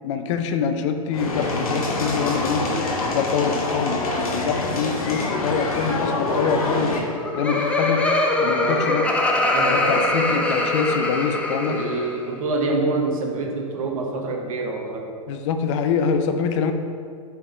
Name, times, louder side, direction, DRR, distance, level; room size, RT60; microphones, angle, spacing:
voice 1, 0.0-2.6 3.1-6.9 7.3-8.0 8.4-9.0 9.6-11.8 15.3-16.7, left 6 dB, 55° left, 7 dB, 0.6 m, -25 dB
sound 1, 1.1-7.0, left 2 dB, 80° left, 1.0 m, -25 dB
Laughter, 6.9-12.2, left 2 dB, 5° left, 0.7 m, -22 dB
voice 2, 8.5-10.1 11.7-15.1, right 2 dB, 70° right, 1 dB, 1.1 m, -27 dB
4.9 x 4.8 x 4.2 m, 2.2 s
hypercardioid pair, 105°, 18 cm